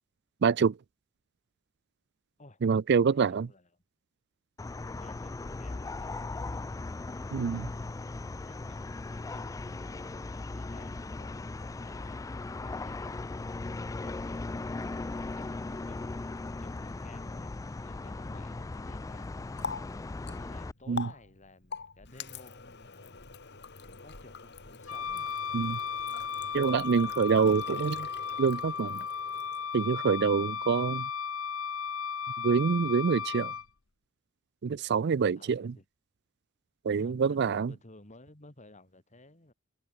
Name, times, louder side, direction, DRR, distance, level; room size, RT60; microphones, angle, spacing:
voice 1, 0.4-0.8 2.6-3.5 7.3-7.7 20.9-21.1 25.5-25.8 26.5-28.1 28.4-29.0 29.7-31.1 32.4-33.5 34.6-35.7 36.8-37.7, right 5 dB, 55° right, 0.4 m, -26 dB
voice 2, 3.0-3.7 4.7-6.1 8.4-13.2 14.0-14.4 15.3-16.0 16.4-19.7 20.4-23.4 23.8-25.3 35.4-35.8 36.8-39.5, left 2 dB, 35° left, 3.9 m, -55 dB
sound 1, 4.6-20.7, left 3 dB, 15° left, 0.3 m, -38 dB
Water tap faucet, 19.1-29.9, left 5 dB, 55° left, 2.7 m, -45 dB
Wind instrument woodwind instrument, 24.9-33.7, left 6 dB, 80° left, 1.4 m, -35 dB
head